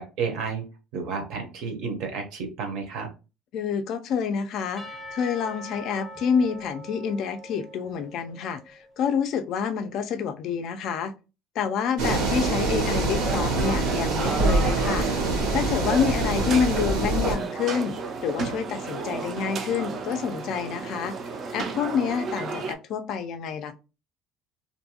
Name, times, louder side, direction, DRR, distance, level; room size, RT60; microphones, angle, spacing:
voice 1, 0.0-3.1, right 5 dB, 60° right, 0.7 m, -32 dB
voice 2, 3.5-11.1 11.6-15.1 15.5-18.0 18.2-21.2 21.5-23.7, left 6 dB, 50° left, 0.3 m, -28 dB
Percussion / Church bell, 4.8-8.7, equal, 15° left, 0.6 m, -42 dB
sound 1, 12.0-22.7, right 4 dB, 35° right, 0.3 m, -33 dB
sound 2, 12.0-17.4, right 3 dB, 85° right, 0.9 m, -25 dB
2.5 x 2.2 x 2.8 m
cardioid pair, 160°, 0 cm